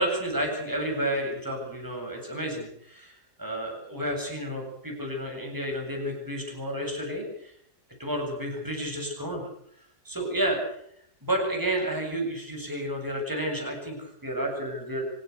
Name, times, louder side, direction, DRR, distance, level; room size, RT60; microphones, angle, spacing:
voice 1, 0.0-7.5 8.0-9.4 10.0-10.8 11.2-15.0, right 1 dB, 10° right, 1 dB, 8.1 m, -31 dB
26.0 x 17.0 x 8.2 m, 0.67 s
omnidirectional pair, 1.9 m